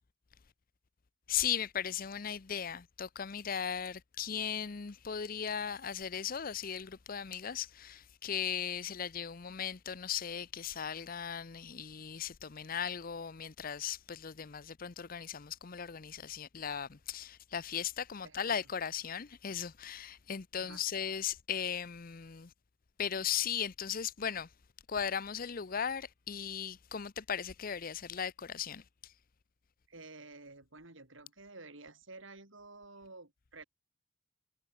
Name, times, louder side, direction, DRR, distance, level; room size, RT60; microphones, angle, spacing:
voice 1, 1.3-22.5 23.0-24.5 24.9-29.1, left 8 dB, 45° left, 0.7 m, -37 dB
voice 2, 18.2-18.6 20.6-20.8 29.9-33.6, right 3 dB, 70° right, 4.7 m, -52 dB
head